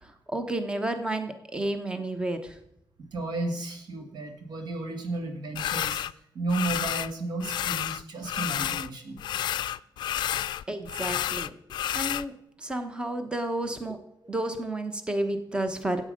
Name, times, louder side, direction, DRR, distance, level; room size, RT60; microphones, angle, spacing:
voice 1, 0.0-2.6 10.7-11.5 11.9-12.3 12.6-14.0 14.3-16.0, right 1 dB, 10° right, 8 dB, 0.9 m, -31 dB
voice 2, 3.0-6.0 6.3-9.2, right 2 dB, 70° right, 5 dB, 2.0 m, -33 dB
sound 1, 5.6-6.1 6.5-7.1 7.4-8.9 9.2-12.3, left 11 dB, 75° left, 0.4 m, -30 dB
14.0 x 8.5 x 5.2 m, 0.80 s
wide cardioid pair, 170°, 8 cm